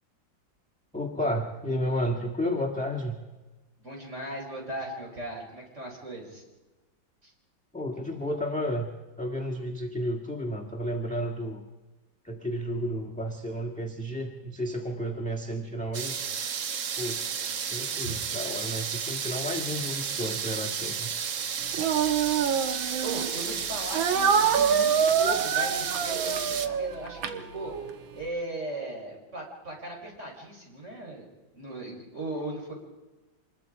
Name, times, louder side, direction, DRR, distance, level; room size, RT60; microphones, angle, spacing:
voice 1, 0.9-3.2 7.7-11.6 12.2-16.2 17.0-17.2 17.5-21.2, equal, 5° left, 2 dB, 1.4 m, -32 dB
voice 2, 3.8-6.4 7.2-7.3 18.0-18.2 23.0-31.2 31.5-32.7, right 1 dB, 35° right, 0 dB, 5.0 m, -38 dB
Laida faucet, 15.9-26.7, right 7 dB, 55° right, 1.0 m, -32 dB
Speech, 21.7-23.3 23.9-28.0, right 7 dB, 85° right, 1.9 m, -26 dB
26.0 x 21.0 x 5.0 m, 1.2 s
omnidirectional pair, 2.1 m